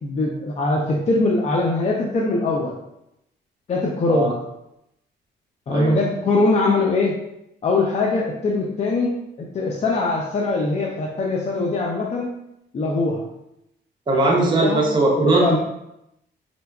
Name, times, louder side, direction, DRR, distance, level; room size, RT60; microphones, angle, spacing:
voice 1, 0.0-2.7 3.7-4.3 5.7-7.1 7.6-9.1 9.5-12.3 12.7-13.2 14.1-14.8 15.1-15.6, left 2 dB, 35° left, -1 dB, 0.4 m, -22 dB
voice 2, 14.1-15.6, right 2 dB, 25° right, -3 dB, 0.6 m, -19 dB
3.8 x 2.2 x 2.2 m, 0.83 s
cardioid pair, 90°, 20 cm